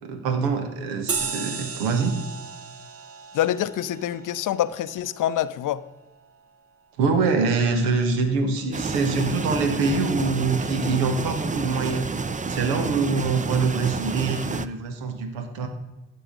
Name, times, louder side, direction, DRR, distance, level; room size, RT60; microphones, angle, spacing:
voice 1, 0.0-2.2 7.0-12.1 12.5-15.7, right 4 dB, 75° right, 1.4 m, -24 dB
sound 1, 1.1-6.0, right 5 dB, 40° right, 1.1 m, -35 dB
voice 2, 3.3-5.8, left 11 dB, 55° left, 0.7 m, -26 dB
sound 2, 8.7-14.7, right 4 dB, 20° right, 0.7 m, -30 dB
12.0 x 9.0 x 3.9 m
hypercardioid pair, 45°, 37 cm